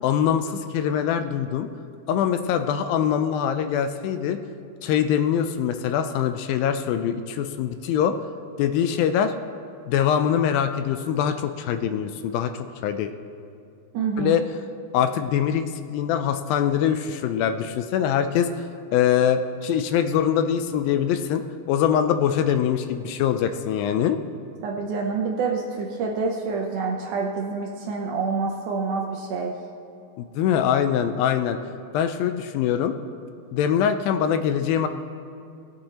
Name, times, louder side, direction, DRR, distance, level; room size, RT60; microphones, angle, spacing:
voice 1, 0.0-1.7 2.1-4.4 4.8-8.2 8.6-9.3 9.9-13.1 14.2-14.4 14.9-15.7 15.9-18.5 18.9-24.2 30.2-31.6 31.9-33.0 33.5-34.9, left 9 dB, 80° left, 8 dB, 2.2 m, -23 dB
voice 2, 13.9-14.4 24.6-29.5, right 4 dB, 75° right, 0 dB, 1.9 m, -27 dB
19.0 x 8.0 x 2.9 m, 2.6 s
omnidirectional pair, 4.3 m